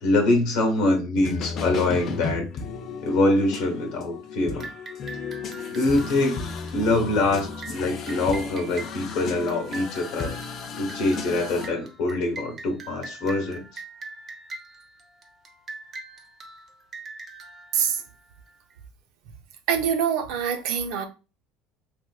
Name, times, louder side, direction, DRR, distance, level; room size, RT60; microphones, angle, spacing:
voice 1, 0.0-2.5 3.0-4.7 5.7-6.4 6.7-10.3 10.8-13.6, left 2 dB, 70° left, 1.0 m, -24 dB
sound 1, 1.2-11.7, left 5 dB, 45° left, 0.6 m, -35 dB
sound 2, 4.6-18.7, right 3 dB, 35° right, 0.7 m, -43 dB
voice 2, 19.7-21.1, right 8 dB, 75° right, 0.6 m, -24 dB
3.3 x 2.5 x 2.3 m
supercardioid pair, 110°, 0 cm